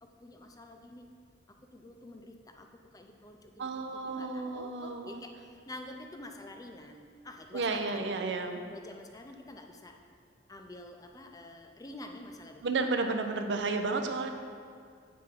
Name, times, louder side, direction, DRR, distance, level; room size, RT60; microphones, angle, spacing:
voice 1, 0.0-1.1 1.5-2.7 2.9-8.2 8.7-9.9 10.5-12.9, left 1 dB, 20° left, 4 dB, 0.5 m, -48 dB
voice 2, 3.6-5.2 7.5-8.6 12.6-14.3, right 3 dB, 80° right, 6 dB, 0.6 m, -32 dB
8.7 x 3.5 x 5.0 m, 2.1 s
head